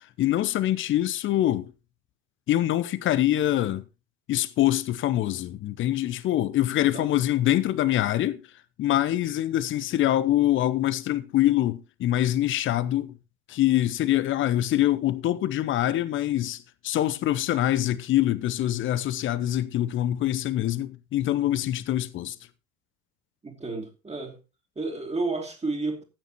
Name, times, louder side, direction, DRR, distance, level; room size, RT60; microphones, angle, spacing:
voice 1, 0.2-1.7 2.5-3.8 4.3-8.4 8.8-13.2 13.5-22.4, left 13 dB, 25° left, 0.7 m, -24 dB
voice 2, 23.4-24.4 24.8-26.0, right 3 dB, 15° right, 2.6 m, -31 dB
14.5 x 9.1 x 3.0 m
figure-of-eight pair, 75°, 48 cm